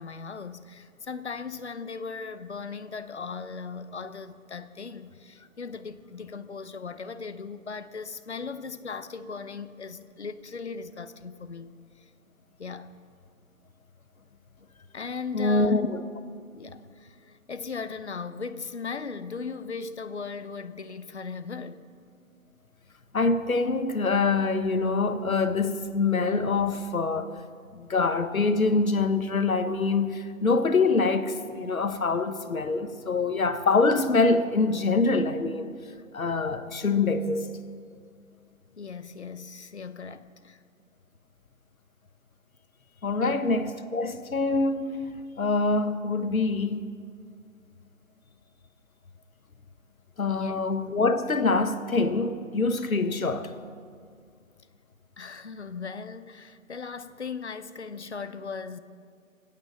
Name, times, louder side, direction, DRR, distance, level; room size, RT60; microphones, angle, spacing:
voice 1, 0.0-11.7 12.6-12.9 14.9-15.7 16.5-21.9 38.8-40.6 43.2-43.4 50.3-50.6 55.2-58.8, left 5 dB, 55° left, 0.9 m, -38 dB
voice 2, 15.3-16.0 23.1-27.3 27.7-35.7 36.1-37.5 43.0-45.1 45.4-46.9 50.2-53.5, left 3 dB, 75° left, 1.4 m, -25 dB
23.0 x 9.1 x 6.7 m
figure-of-eight pair, 170°, 42 cm